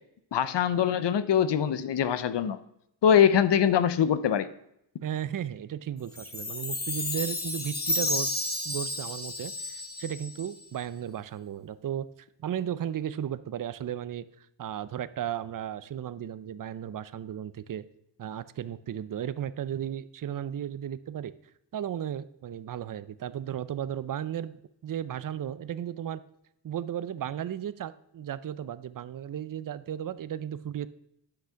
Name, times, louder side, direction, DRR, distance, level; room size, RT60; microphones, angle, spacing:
voice 1, 0.3-2.6 3.0-4.5, left 8 dB, 65° left, 14 dB, 0.8 m, -23 dB
voice 2, 5.0-8.3 8.6-12.1 12.4-14.3 14.6-17.8 18.2-21.3 21.7-26.2 26.6-30.9, right 10 dB, 45° right, 15 dB, 0.6 m, -35 dB
Chime, 6.2-10.6, left 1 dB, 20° left, 1.5 m, -32 dB
10.0 x 6.1 x 5.7 m, 0.77 s
wide cardioid pair, 105°, 45 cm